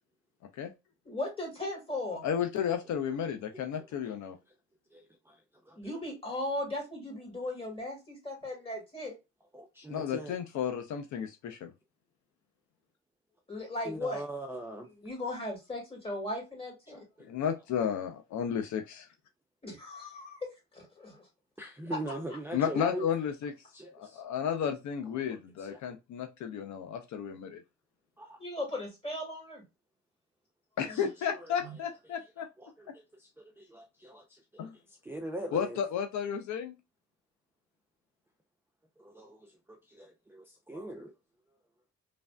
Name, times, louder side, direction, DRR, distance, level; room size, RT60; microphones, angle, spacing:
voice 1, 1.1-2.2 5.8-9.1 13.5-14.2 14.9-17.0 19.6-20.4 20.7-21.3 28.4-29.6 30.9-31.1 31.6-31.7, left 1 dB, 20° left, 1.9 m, -37 dB
voice 2, 2.2-4.4 9.9-11.7 17.3-19.1 22.5-23.5 23.9-27.6 30.8-32.5 34.6-34.7 35.5-36.7, left 8 dB, 70° left, 0.6 m, -33 dB
voice 3, 9.5-10.3 13.9-14.9 16.9-17.0 21.6-23.1 23.7-24.2 25.7-25.8 28.2-28.4 32.6-32.9 33.6-34.4 35.1-35.8 39.0-39.4 39.9-41.1, right 1 dB, 10° right, 0.4 m, -40 dB
3.2 x 2.5 x 2.2 m
cardioid pair, 90°, 30 cm